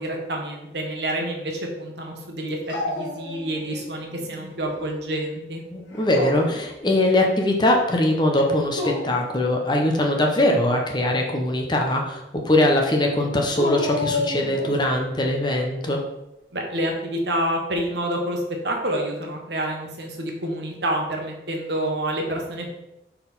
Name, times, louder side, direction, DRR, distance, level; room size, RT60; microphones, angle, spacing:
voice 1, 0.0-2.6 2.9-5.6 16.5-22.7, right 1 dB, 70° right, 1 dB, 1.2 m, -28 dB
Dog, 2.7-3.8 4.2-4.9 5.9-6.7 8.6-9.3 13.5-14.9, left 2 dB, 90° left, 1.2 m, -30 dB
voice 2, 5.7-16.0, left 1 dB, 25° left, 1 dB, 0.8 m, -21 dB
4.6 x 4.0 x 5.4 m, 0.90 s
head